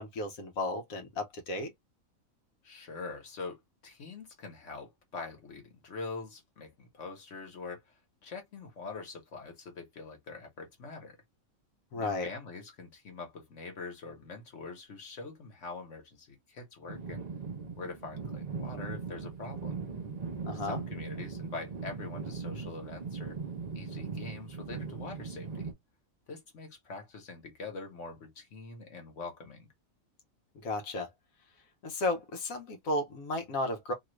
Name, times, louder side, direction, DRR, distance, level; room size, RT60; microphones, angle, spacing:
voice 1, 0.0-1.7 11.9-12.3 20.4-20.8 30.6-31.1 31.8-33.9, left 2 dB, 80° left, 1.2 m, -33 dB
voice 2, 2.6-11.2 11.9-17.2 17.8-19.8 20.5-23.4 23.7-25.7 26.3-29.7, left 4 dB, 60° left, 1.5 m, -44 dB
sound 1, 16.9-25.7, right 5 dB, 40° right, 0.6 m, -39 dB
3.0 x 2.4 x 3.0 m
omnidirectional pair, 1.4 m